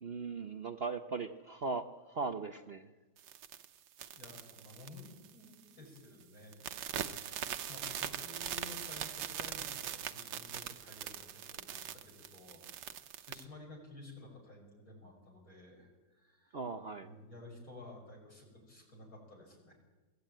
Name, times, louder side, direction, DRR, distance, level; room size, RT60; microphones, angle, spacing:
voice 1, 0.0-2.9 16.5-17.1, right 4 dB, 60° right, 7 dB, 0.6 m, -39 dB
sound 1, 3.2-5.7 6.0-6.2 6.5-13.4, right 10 dB, 80° right, 1.6 m, -42 dB
voice 2, 4.1-6.7 7.7-16.6 17.0-19.7, left 2 dB, 45° left, -1 dB, 6.5 m, -53 dB
23.0 x 15.0 x 9.1 m, 1.2 s
omnidirectional pair, 2.0 m